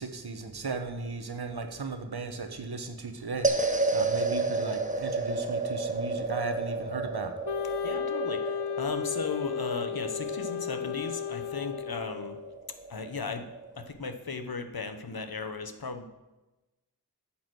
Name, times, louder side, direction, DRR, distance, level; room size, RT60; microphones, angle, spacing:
voice 1, 0.0-7.4, right 3 dB, 75° right, 7 dB, 1.2 m, -36 dB
sound 1, 3.4-13.9, right 3 dB, 20° right, 1.0 m, -32 dB
Wind instrument woodwind instrument, 7.4-12.6, left 9 dB, 85° left, 0.5 m, -34 dB
voice 2, 7.8-12.4 12.9-13.5 13.7-16.1, left 4 dB, 65° left, 8 dB, 1.1 m, -36 dB
9.3 x 7.3 x 6.2 m, 1.1 s
wide cardioid pair, 45°, 39 cm